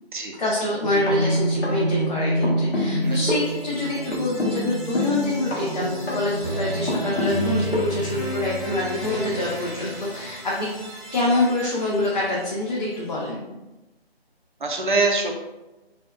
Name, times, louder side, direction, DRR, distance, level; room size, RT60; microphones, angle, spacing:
voice 1, 0.4-10.7 11.1-13.4, left 1 dB, 40° left, -6 dB, 0.5 m, -26 dB
sound 1, 0.8-8.1, equal, 70° left, 1.0 m, -26 dB
sound 2, 3.0-12.9, right 1 dB, 5° left, 0.7 m, -34 dB
voice 2, 3.0-3.4 14.6-15.3, right 3 dB, 50° right, 1 dB, 0.5 m, -24 dB
2.6 x 2.2 x 2.2 m, 1.0 s
figure-of-eight pair, 155°, 31 cm